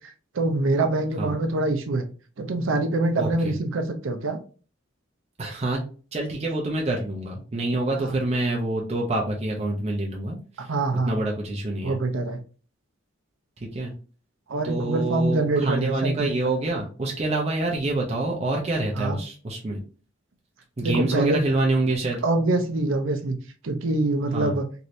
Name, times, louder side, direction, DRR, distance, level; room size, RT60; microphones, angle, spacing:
voice 1, 0.3-2.0 2.4-4.4 8.0-8.1 10.7-11.2 11.8-12.4 14.5-16.3 19.0-19.2 20.8-21.4 22.2-23.4 23.6-24.6, right 2 dB, 75° right, 7 dB, 0.6 m, -24 dB
voice 2, 3.2-3.5 5.4-5.8 6.1-10.4 11.1-12.0 13.7-13.9 14.6-19.8 20.8-22.2 24.3-24.6, right 2 dB, 30° right, -1 dB, 0.5 m, -26 dB
3.1 x 2.7 x 2.6 m, 0.38 s
head